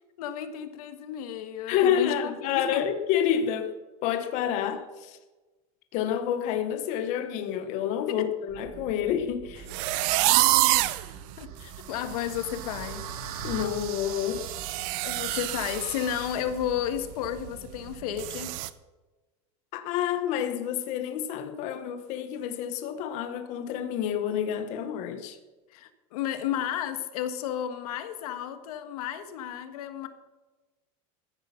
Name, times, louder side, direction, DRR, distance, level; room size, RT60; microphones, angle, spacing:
voice 1, 0.2-2.9 8.1-8.3 11.4-13.1 13.4-13.5 15.0-18.6 25.7-30.1, left 9 dB, 90° left, 1.5 m, -32 dB
voice 2, 1.7-3.7 4.0-5.2 5.9-9.7 11.1-11.2 13.4-14.4 19.7-25.4, left 9 dB, 40° left, 1.1 m, -28 dB
sound 1, 8.5-18.2, right 7 dB, 60° right, 3.9 m, -47 dB
sound 2, 9.7-11.0 11.6-11.7 12.1-12.4 12.6-16.3 16.6-16.8 17.2-17.3 18.2-18.7, right 18 dB, 45° right, 0.6 m, -27 dB
sound 3, 11.0-16.1, right 7 dB, 80° right, 2.1 m, -42 dB
15.0 x 10.0 x 5.7 m
supercardioid pair, 180°, 19 cm